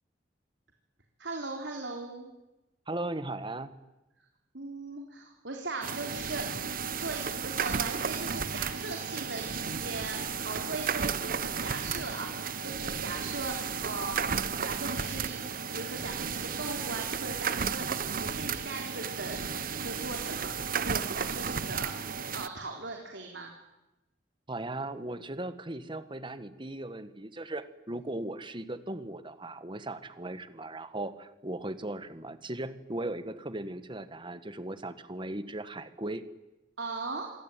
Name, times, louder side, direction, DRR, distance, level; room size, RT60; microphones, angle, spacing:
voice 1, 1.2-2.3 4.5-6.6 7.0-15.4 15.7-20.6 20.8-22.0 22.3-23.5 36.8-37.3, right 3 dB, 85° right, 1 dB, 3.8 m, -39 dB
voice 2, 2.9-3.7 24.5-36.2, right 2 dB, 30° right, 11 dB, 1.8 m, -37 dB
sound 1, 5.8-22.5, right 6 dB, 55° right, 1.1 m, -33 dB
27.0 x 23.0 x 9.3 m, 0.99 s
head